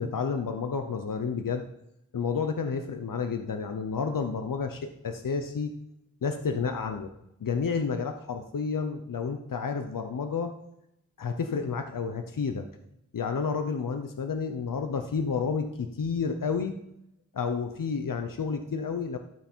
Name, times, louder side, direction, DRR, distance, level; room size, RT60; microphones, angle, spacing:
voice 1, 0.0-1.6 2.1-5.7 6.2-7.1 7.4-10.5 11.2-12.6 13.1-16.8 17.3-19.2, left 5 dB, 90° left, 6 dB, 0.9 m, -30 dB
14.0 x 9.1 x 4.5 m, 0.83 s
wide cardioid pair, 55°, 32 cm